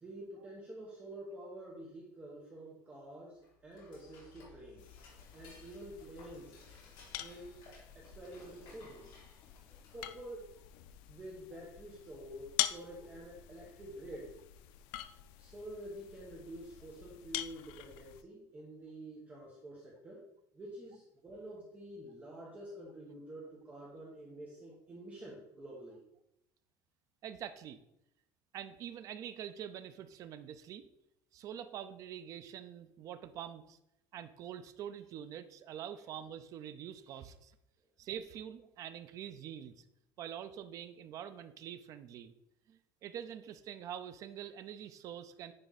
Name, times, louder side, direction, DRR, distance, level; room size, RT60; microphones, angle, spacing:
voice 1, 0.0-4.8 5.3-6.6 7.2-7.7 7.9-9.1 9.9-10.5 11.1-14.4 15.4-20.2 20.5-26.0, right 1 dB, 20° right, -4 dB, 1.2 m, -48 dB
Dishes pots and pans / Cutlery silverware, 3.3-10.2, left 3 dB, 55° left, 2.6 m, -59 dB
sound 1, 4.8-18.2, left 14 dB, 85° left, 0.4 m, -44 dB
voice 2, 27.2-27.8 28.5-30.8 31.3-33.8 34.1-37.5 38.0-39.8 40.2-42.3 42.7-45.5, right 9 dB, 45° right, 11 dB, 0.5 m, -45 dB
9.9 x 3.4 x 4.1 m, 0.85 s
cardioid pair, 165°, 8 cm